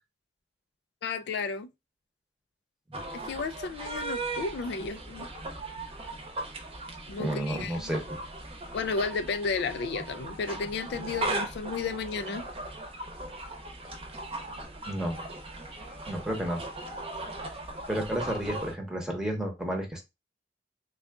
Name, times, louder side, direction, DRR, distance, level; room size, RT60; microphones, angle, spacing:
voice 1, 1.0-1.7 3.1-5.3 7.1-7.9 8.7-12.4, left 4 dB, 65° left, 0.3 m, -33 dB
sound 1, 2.9-18.7, right 2 dB, 30° right, 0.8 m, -38 dB
voice 2, 7.2-8.2 14.9-15.2 16.1-16.6 17.9-20.0, right 1 dB, 5° right, 0.9 m, -31 dB
3.7 x 2.4 x 3.4 m
head